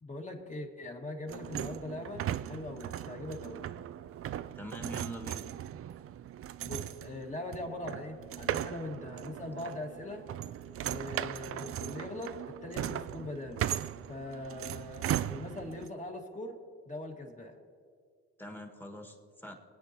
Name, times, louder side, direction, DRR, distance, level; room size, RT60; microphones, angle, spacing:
voice 1, 0.0-3.7 6.6-10.3 10.8-13.7 14.1-16.6 16.9-17.6, left 2 dB, 25° left, 1 dB, 2.0 m, -41 dB
sound 1, 1.3-15.9, right 11 dB, 50° right, 0.4 m, -38 dB
voice 2, 4.6-5.5 18.4-19.5, equal, 5° left, 2 dB, 1.8 m, -43 dB
24.0 x 9.2 x 3.0 m, 2.1 s
cardioid pair, 90°, 30 cm